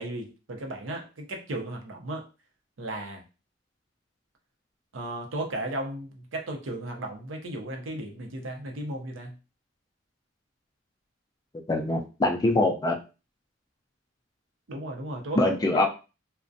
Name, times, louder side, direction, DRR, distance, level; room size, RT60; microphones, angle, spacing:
voice 1, 0.0-2.2 2.8-3.2 4.9-9.4 14.7-15.8, right 1 dB, 75° right, 2 dB, 0.6 m, -35 dB
voice 2, 11.7-12.9 15.4-15.9, left 2 dB, 20° left, 3 dB, 0.3 m, -23 dB
2.4 x 2.1 x 2.5 m, 0.32 s
head